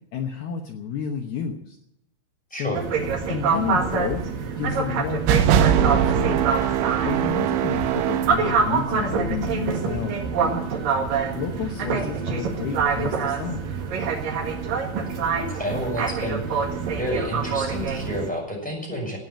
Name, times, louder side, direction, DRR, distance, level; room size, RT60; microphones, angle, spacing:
voice 1, 0.1-1.8 2.5-2.8 3.3-4.3 4.6-6.6 7.0-10.7 11.3-13.7, left 7 dB, 70° left, 3 dB, 2.5 m, -31 dB
voice 2, 2.5-2.8 15.5-16.7 17.0-19.2, equal, ahead, -2 dB, 5.8 m, -30 dB
sound 1, 2.7-18.3, right 5 dB, 55° right, 3.0 m, -26 dB
sound 2, 5.3-8.5, right 9 dB, 75° right, 2.9 m, -21 dB
16.0 x 9.1 x 8.8 m, 0.82 s
omnidirectional pair, 5.6 m